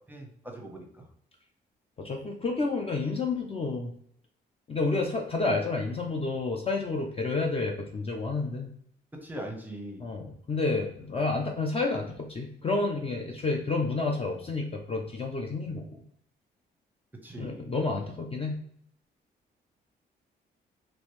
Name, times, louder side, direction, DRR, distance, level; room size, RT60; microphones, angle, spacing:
voice 1, 0.1-1.0 9.1-10.0 17.2-17.7, right 1 dB, 10° right, 2 dB, 0.9 m, -41 dB
voice 2, 2.0-3.9 4.7-8.7 10.0-16.0 17.4-18.6, left 3 dB, 30° left, 2 dB, 0.6 m, -30 dB
3.1 x 2.6 x 3.0 m, 0.68 s
cardioid pair, 70°, 19 cm